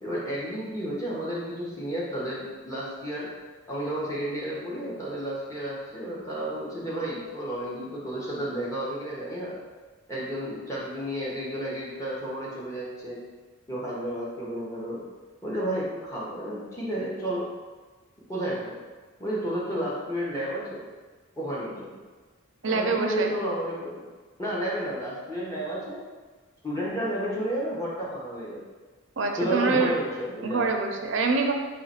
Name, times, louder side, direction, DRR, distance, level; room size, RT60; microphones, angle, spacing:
voice 1, 0.0-3.3 3.7-9.6 10.1-13.2 13.7-15.0 15.4-17.5 18.3-18.8 19.2-20.8 21.4-21.9 22.7-24.1 24.4-26.0 26.6-28.6 29.4-30.8, equal, 15° left, -7 dB, 1.1 m, -31 dB
voice 2, 22.6-23.3 29.2-30.0 30.4-31.5, right 4 dB, 60° right, 3 dB, 0.5 m, -25 dB
4.0 x 3.1 x 4.3 m, 1.3 s
head